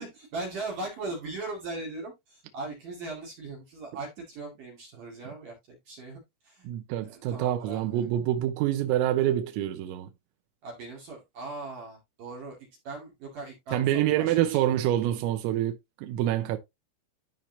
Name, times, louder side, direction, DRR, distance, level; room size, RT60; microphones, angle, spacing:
voice 1, 0.0-6.7 7.0-8.1 10.6-12.6 12.8-14.7, right 3 dB, 50° right, 3.2 m, -39 dB
voice 2, 6.7-10.1 13.7-16.6, right 12 dB, 85° right, 3.5 m, -26 dB
13.5 x 4.5 x 2.8 m
omnidirectional pair, 5.8 m